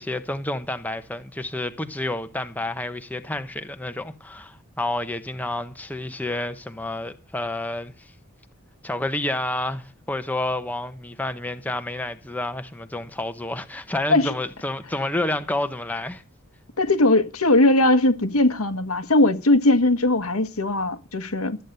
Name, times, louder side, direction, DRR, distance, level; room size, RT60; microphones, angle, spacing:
voice 1, 0.0-8.1 8.8-16.2, left 1 dB, 10° left, 0.9 m, -29 dB
voice 2, 16.8-21.6, left 2 dB, 90° left, 1.5 m, -19 dB
13.0 x 9.2 x 6.7 m
head